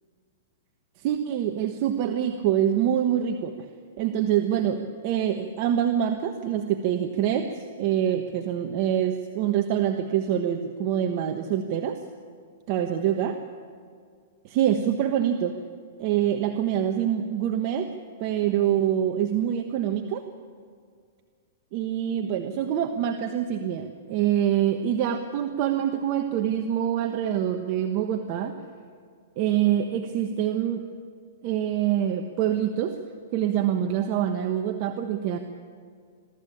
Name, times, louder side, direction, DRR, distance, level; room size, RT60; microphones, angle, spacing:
voice 1, 1.0-3.7 4.0-12.0 12.7-13.3 14.4-15.6 16.0-17.9 18.2-20.2 21.7-28.6 29.4-30.8 31.4-33.0 33.3-35.4, right 10 dB, 45° right, 5 dB, 1.2 m, -25 dB
23.0 x 14.0 x 8.7 m, 2.1 s
hypercardioid pair, 130°, 0 cm